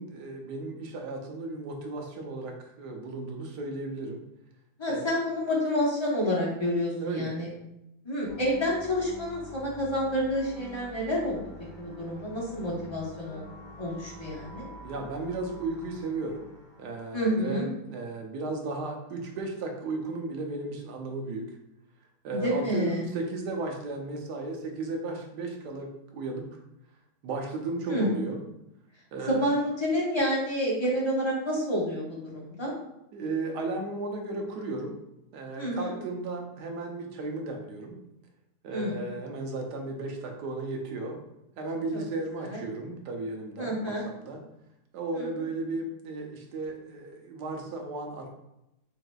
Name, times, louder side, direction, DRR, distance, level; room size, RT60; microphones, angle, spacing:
voice 1, 0.0-4.2 4.9-5.1 7.0-7.4 14.8-16.5 16.8-21.5 22.2-26.6 27.2-28.4 29.1-29.5 33.1-35.0 35.3-38.0 38.6-41.2 41.6-44.4 44.9-48.3, right 2 dB, 80° right, 2 dB, 1.3 m, -35 dB
voice 2, 4.8-7.5 8.0-13.4 13.8-14.7 17.1-17.7 22.3-23.1 27.9-28.1 29.3-32.7 35.6-35.9 38.7-39.2 41.9-42.0 42.4-42.6 43.6-44.0 45.2-45.3, equal, 20° left, -6 dB, 0.8 m, -29 dB
sound 1, 8.2-17.2, left 1 dB, 70° left, 0.4 m, -47 dB
5.7 x 2.7 x 2.3 m, 0.87 s
omnidirectional pair, 1.8 m